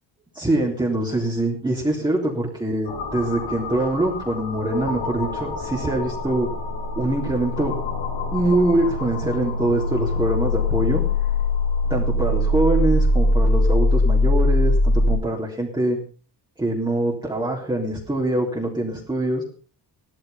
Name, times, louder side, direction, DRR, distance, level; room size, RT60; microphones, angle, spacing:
voice 1, 0.3-6.5 7.0-7.7 8.3-11.0 11.9-16.0 16.6-19.4, right 1 dB, 10° right, -3 dB, 3.7 m, -23 dB
sound 1, 2.9-15.1, left 2 dB, 90° left, 7.7 m, -23 dB
17.5 x 13.0 x 5.7 m, 0.39 s
cardioid pair, 155°, 41 cm